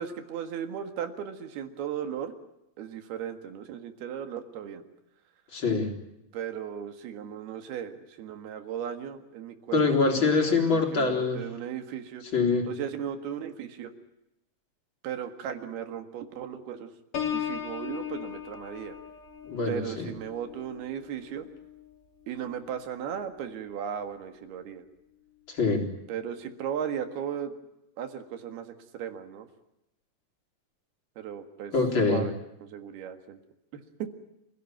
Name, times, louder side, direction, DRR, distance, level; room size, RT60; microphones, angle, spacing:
voice 1, 0.0-2.3 2.8-4.8 6.3-12.2 12.7-13.9 15.0-16.9 17.3-19.0 19.7-21.5 22.3-24.9 26.1-27.5 28.0-29.5 31.2-31.7 32.1-32.3 32.6-33.4 33.7-34.1, right 8 dB, 70° right, 7 dB, 3.7 m, -36 dB
voice 2, 5.5-5.9 9.7-11.4 12.3-12.7 19.4-20.1 25.5-25.9 31.7-32.3, left 4 dB, 30° left, 2 dB, 4.2 m, -24 dB
Piano, 17.1-22.8 23.2-23.6, left 9 dB, 55° left, 3.6 m, -38 dB
28.0 x 16.5 x 9.3 m, 0.88 s
omnidirectional pair, 4.8 m